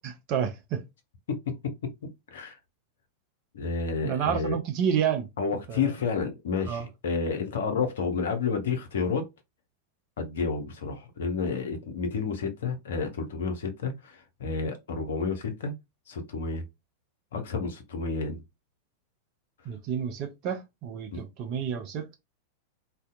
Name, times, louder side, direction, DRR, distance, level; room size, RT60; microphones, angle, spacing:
voice 1, 0.0-0.8 4.0-5.3 5.7-5.9 6.7-6.9 19.7-22.1, right 8 dB, 40° right, 0.4 m, -30 dB
voice 2, 1.3-1.9 2.3-2.6 3.5-4.6 5.4-9.3 10.2-15.7 16.1-16.6 17.3-18.4 21.1-21.2, left 5 dB, 60° left, 0.6 m, -30 dB
2.6 x 2.2 x 2.3 m
figure-of-eight pair, 90°, 0 cm